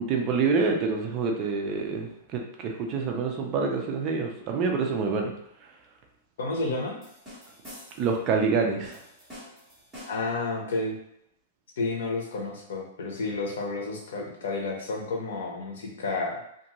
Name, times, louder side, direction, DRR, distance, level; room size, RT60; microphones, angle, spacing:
voice 1, 0.0-5.3 8.0-9.0, right 4 dB, 30° right, 2 dB, 0.4 m, -27 dB
voice 2, 6.4-7.0 10.1-11.0 11.8-16.4, left 3 dB, 80° left, -1 dB, 0.9 m, -31 dB
sound 1, 7.0-8.2 8.8-10.4, left 1 dB, 5° right, 1.3 m, -47 dB
2.6 x 2.5 x 2.9 m, 0.75 s
supercardioid pair, 165°, 0 cm